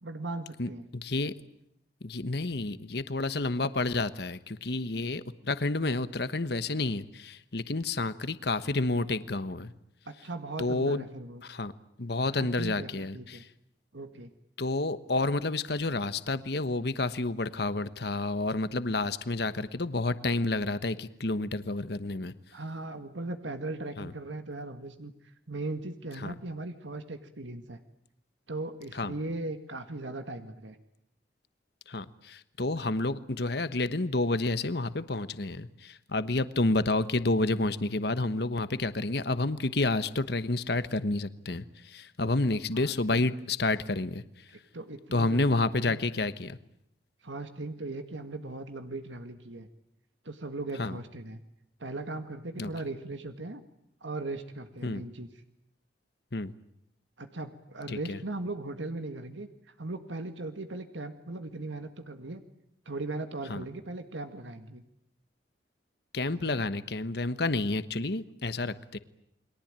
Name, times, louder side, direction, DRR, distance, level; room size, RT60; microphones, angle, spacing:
voice 1, 0.0-0.8 10.1-11.4 12.3-13.5 13.9-14.3 22.5-27.8 28.5-30.8 32.8-33.0 42.7-43.2 44.7-45.5 45.8-46.0 47.2-49.7 50.2-51.4 51.8-53.6 54.0-55.3 57.2-59.5 59.8-62.4 62.9-64.8 66.3-66.6, right 2 dB, 85° right, 8 dB, 1.9 m, -38 dB
voice 2, 0.6-1.3 2.0-9.7 10.6-11.0 11.4-11.7 12.0-13.4 14.6-22.3 24.0-24.1 26.2-26.3 28.9-29.1 31.9-44.2 45.1-46.6 50.8-51.0 52.6-52.7 54.8-55.0 56.3-56.5 57.9-58.2 63.5-63.6 66.1-69.0, left 2 dB, 60° left, 13 dB, 1.2 m, -30 dB
29.5 x 22.5 x 8.9 m, 0.76 s
head